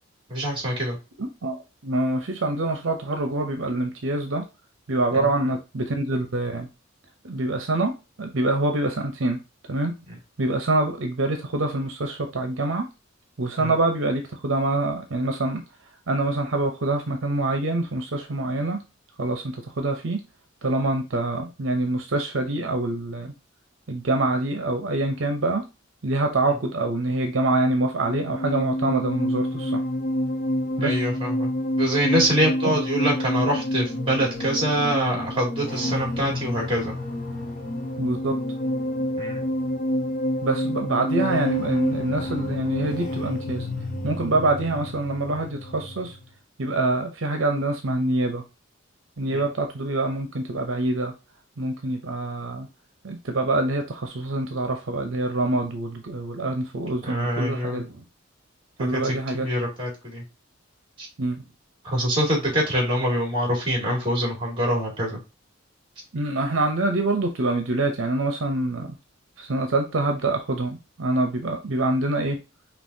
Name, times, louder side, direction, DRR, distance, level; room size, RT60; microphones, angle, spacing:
voice 1, 0.3-1.0 5.1-5.2 13.6-13.7 30.8-31.5 31.8-37.0 39.2-39.5 49.3-49.4 57.1-57.8 58.9-60.2 61.0-61.1 61.8-65.2, equal, 25° right, -1 dB, 2.3 m, -25 dB
voice 2, 1.2-4.4 4.9-6.7 7.2-9.4 9.7-9.9 10.4-12.9 13.4-15.6 16.1-18.8 19.2-20.2 20.6-23.3 23.9-25.7 26.0-29.8 30.8-31.1 32.6-32.7 38.0-38.3 40.4-43.7 44.0-46.2 46.6-48.4 49.2-51.1 51.6-52.7 53.0-58.0 58.8-59.5 61.2-61.4 66.1-69.0 69.4-72.4, right 2 dB, 75° right, 5 dB, 0.7 m, -25 dB
sound 1, 27.8-46.3, left 1 dB, 40° left, 0.8 m, -28 dB
5.4 x 2.9 x 2.7 m, 0.28 s
head